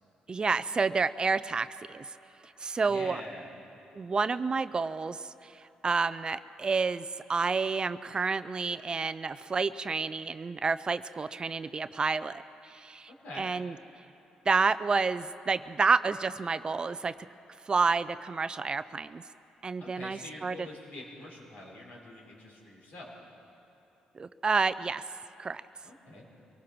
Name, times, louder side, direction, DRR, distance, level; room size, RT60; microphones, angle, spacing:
voice 1, 0.3-2.1 2.4-3.2 3.9-13.7 14.5-17.1 17.7-19.2 19.6-20.7 24.1-25.0 25.4-25.6, right 4 dB, 30° right, 14 dB, 0.5 m, -29 dB
voice 2, 2.9-3.5 13.2-13.5 19.8-23.1 25.8-26.3, left 1 dB, 70° left, -3 dB, 5.5 m, -45 dB
24.5 x 18.5 x 6.1 m, 2.9 s
cardioid pair, 95°, 3 cm